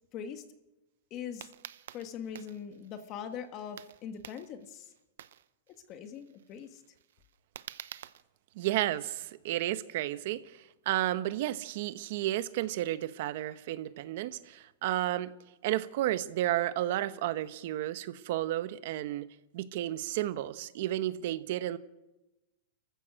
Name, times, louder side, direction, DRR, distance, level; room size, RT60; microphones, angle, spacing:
voice 1, 0.1-0.4 1.1-1.5 1.9-4.9 5.9-6.8, left 7 dB, 25° left, 1.6 m, -41 dB
sound 1, 1.4-8.2, right 11 dB, 75° right, 0.8 m, -49 dB
voice 2, 8.5-15.3 15.6-19.3 19.5-21.8, right 14 dB, 50° right, 1.0 m, -32 dB
29.0 x 15.0 x 6.4 m
supercardioid pair, 170°, 0 cm